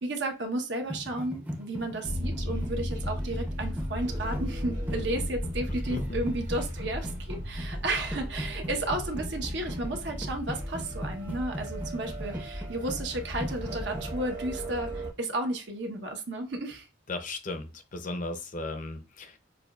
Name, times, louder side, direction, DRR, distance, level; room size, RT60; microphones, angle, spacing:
voice 1, 0.0-16.9, right 2 dB, 65° right, 0.9 m, -33 dB
sound 1, 0.9-14.2, equal, 10° right, 0.6 m, -39 dB
sound 2, 2.0-15.1, equal, 45° right, 1.4 m, -35 dB
voice 2, 5.7-6.0 17.1-19.4, left 2 dB, 45° left, 0.6 m, -36 dB
6.6 x 2.3 x 2.3 m
head